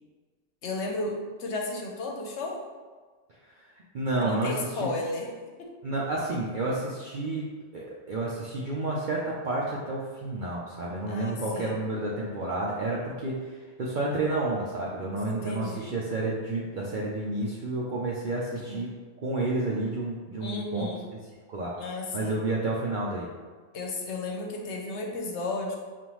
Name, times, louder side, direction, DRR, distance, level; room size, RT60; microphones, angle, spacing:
voice 1, 0.6-2.6 4.1-5.3 5.6-5.7 11.1-11.9 15.2-16.0 18.7-18.8 20.4-21.1 21.8-22.4 23.7-25.8, left 2 dB, 70° left, 0 dB, 1.0 m, -33 dB
voice 2, 3.9-4.9 5.8-7.5 7.7-18.9 19.2-20.9 21.5-21.7 22.1-23.3, right 2 dB, 55° right, -4 dB, 0.6 m, -30 dB
5.3 x 2.5 x 3.0 m, 1.5 s
omnidirectional pair, 1.3 m